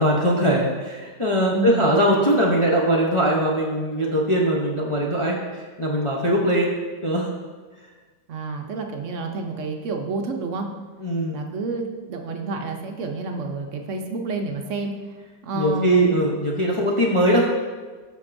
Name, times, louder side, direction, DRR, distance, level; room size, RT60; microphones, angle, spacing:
voice 1, 0.0-7.3 11.0-11.4 15.5-17.5, right 1 dB, 55° left, -3 dB, 0.3 m, -21 dB
voice 2, 1.5-1.9 8.3-10.7 11.3-14.9 15.4-16.2, right 3 dB, 65° right, 3 dB, 0.7 m, -29 dB
13.0 x 5.2 x 2.6 m, 1.4 s
omnidirectional pair, 1.9 m